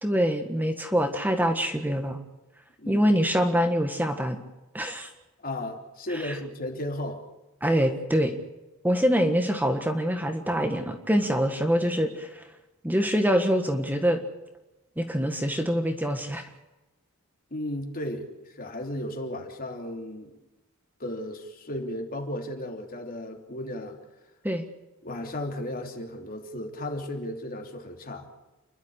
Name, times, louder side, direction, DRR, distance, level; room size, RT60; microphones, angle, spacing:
voice 1, 0.0-2.2 2.9-4.4 4.7-5.1 6.1-6.3 7.6-8.3 8.8-12.5 12.8-14.2 15.0-16.4 24.4-24.6, equal, 10° right, 5 dB, 1.6 m, -25 dB
voice 2, 2.8-3.1 5.4-7.2 17.5-20.3 21.0-24.0 25.0-28.3, left 1 dB, 40° left, 3 dB, 3.1 m, -35 dB
29.5 x 12.0 x 8.1 m, 1.0 s
head